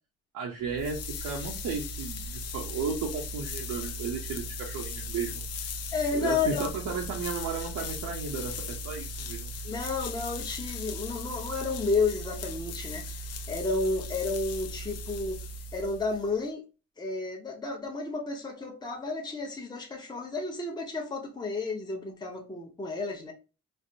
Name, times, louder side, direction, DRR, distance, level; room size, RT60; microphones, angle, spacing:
voice 1, 0.3-5.7 6.1-9.5, right 5 dB, 80° right, 0 dB, 0.8 m, -34 dB
sound 1, 0.6-16.4, left 2 dB, 55° left, 0.5 m, -38 dB
voice 2, 5.9-6.7 9.6-13.1 13.5-15.4 15.7-16.6 17.0-23.3, left 3 dB, 15° left, 0 dB, 0.7 m, -31 dB
3.3 x 2.1 x 2.6 m, 0.32 s
cardioid pair, 90°, 30 cm